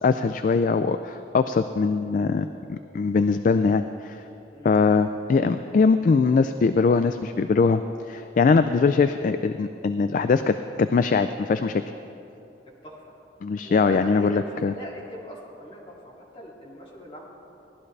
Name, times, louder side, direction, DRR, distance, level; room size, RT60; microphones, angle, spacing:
voice 1, 0.0-4.2 4.6-7.8 8.1-11.8 13.4-14.7, left 4 dB, 50° left, 10 dB, 0.3 m, -22 dB
voice 2, 13.6-17.3, equal, 30° left, -5 dB, 2.5 m, -40 dB
18.0 x 12.0 x 3.3 m, 2.8 s
head